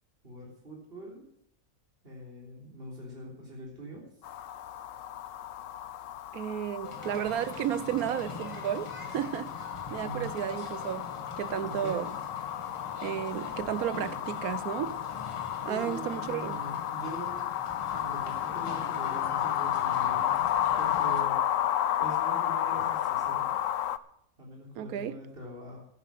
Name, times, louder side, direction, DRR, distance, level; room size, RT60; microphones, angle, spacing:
voice 1, 0.2-1.3 2.0-4.0 10.0-10.4 11.6-12.0 15.7-17.5 17.9-20.4 20.8-23.6 24.4-25.8, equal, 40° right, 3.8 m, -43 dB
sound 1, 4.2-24.0, left 11 dB, 70° left, 1.0 m, -32 dB
voice 2, 6.3-11.1 11.4-12.1 13.0-15.0 15.6-16.6 24.8-25.2, right 10 dB, 90° right, 1.2 m, -33 dB
sound 2, 6.8-21.2, left 1 dB, 20° left, 2.2 m, -45 dB
13.0 x 10.5 x 6.0 m
omnidirectional pair, 1.5 m